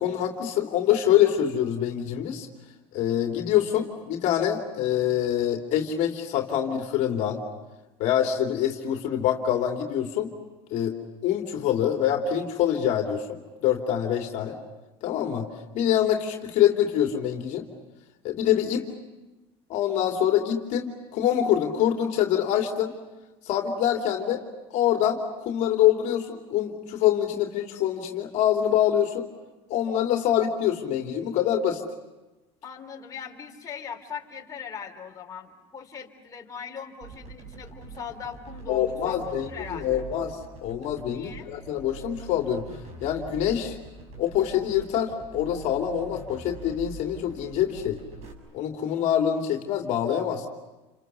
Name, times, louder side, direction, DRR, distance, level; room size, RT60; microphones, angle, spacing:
voice 1, 0.0-2.5 2.9-7.4 8.0-10.3 10.7-10.9 11.2-14.6 15.0-15.5 15.7-17.7 18.2-18.9 19.7-22.9 23.4-24.4 24.7-29.3 29.7-31.8 38.7-42.6 43.0-43.8 44.2-48.0 48.5-50.5, left 10 dB, 55° left, 2 dB, 2.9 m, -25 dB
voice 2, 32.6-40.0 41.1-41.5, left 7 dB, 25° left, 0 dB, 3.5 m, -40 dB
sound 1, 37.0-48.3, right 4 dB, 50° right, 6.2 m, -43 dB
29.5 x 25.5 x 7.0 m, 1.1 s
supercardioid pair, 120°, 15 cm